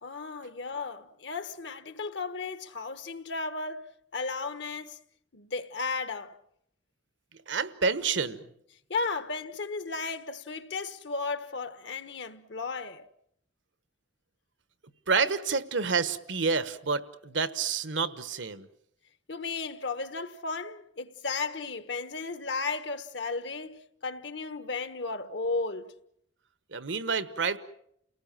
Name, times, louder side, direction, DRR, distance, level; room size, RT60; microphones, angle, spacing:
voice 1, 0.0-3.9 4.1-5.0 5.3-6.3 8.9-13.0 19.3-25.9, left 4 dB, 70° left, 1.3 m, -34 dB
voice 2, 7.5-8.5 15.1-18.7 26.7-27.6, right 5 dB, 80° right, 1.3 m, -28 dB
29.5 x 19.0 x 7.4 m
head